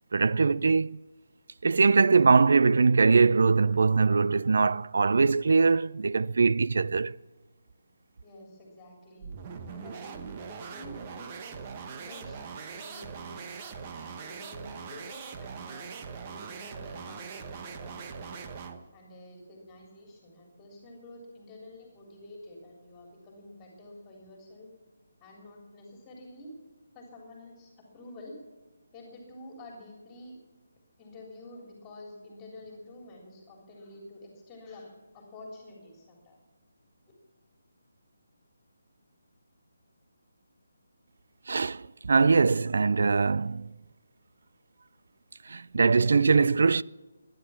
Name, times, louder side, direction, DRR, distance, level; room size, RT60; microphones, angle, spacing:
voice 1, 0.1-1.0 1.6-7.1 41.5-43.7 45.5-46.8, right 4 dB, 60° right, 0.4 m, -22 dB
voice 2, 8.2-9.3 9.7-18.4 18.9-24.7 25.2-26.5 26.9-28.4 28.9-30.4 31.0-36.4, left 1 dB, 20° left, 3.5 m, -49 dB
sound 1, 9.2-18.9, right 5 dB, 30° right, 1.2 m, -41 dB
22.5 x 10.5 x 5.8 m
figure-of-eight pair, 150°, 0 cm